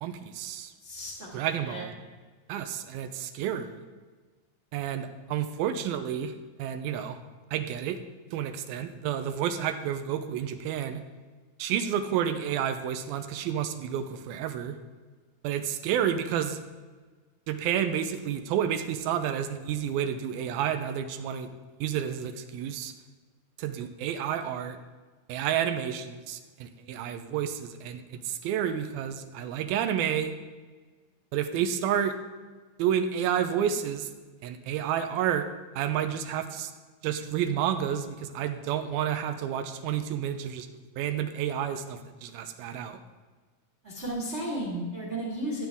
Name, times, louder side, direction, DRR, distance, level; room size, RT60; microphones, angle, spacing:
voice 1, 0.0-0.7 1.3-1.9 2.5-3.8 4.7-6.3 6.6-7.2 7.5-8.0 8.3-11.0 11.6-14.8 15.4-16.6 17.5-21.5 21.8-22.9 23.6-24.8 25.3-30.3 31.3-32.1 32.8-34.1 34.4-35.5 35.8-36.7 37.0-40.7 41.0-43.0, right 9 dB, 85° right, 8 dB, 2.5 m, -30 dB
voice 2, 0.8-1.3 1.6-1.8 43.8-45.6, right 1 dB, 25° right, -4 dB, 1.5 m, -34 dB
14.5 x 8.9 x 3.5 m, 1.4 s
omnidirectional pair, 4.3 m